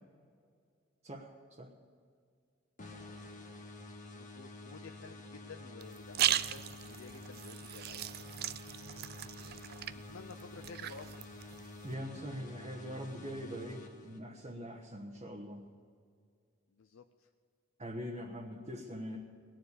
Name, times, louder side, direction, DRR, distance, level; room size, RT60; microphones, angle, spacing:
voice 1, 1.0-1.7 11.8-15.7 17.8-19.2, equal, 30° right, -1 dB, 1.2 m, -43 dB
sound 1, 2.8-14.5, left 2 dB, 40° left, 1.5 m, -49 dB
voice 2, 4.1-8.1 10.0-11.3 16.7-17.3, left 4 dB, 70° left, 5 dB, 0.6 m, -52 dB
sound 2, 5.8-11.9, right 11 dB, 50° right, 0.4 m, -38 dB
19.5 x 7.2 x 8.4 m, 2.2 s
head